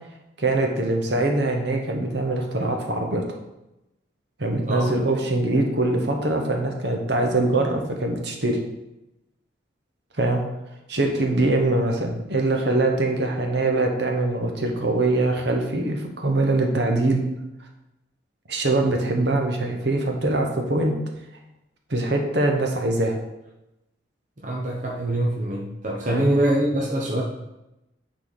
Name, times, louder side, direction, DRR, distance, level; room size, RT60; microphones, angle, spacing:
voice 1, 0.4-3.2 4.4-8.6 10.2-10.4 10.9-17.2 18.5-20.9 21.9-23.2 26.1-26.4, right 2 dB, 60° right, 2 dB, 1.1 m, -23 dB
voice 2, 24.4-27.2, right 1 dB, 40° right, -2 dB, 0.8 m, -24 dB
9.2 x 4.1 x 4.1 m, 0.92 s
head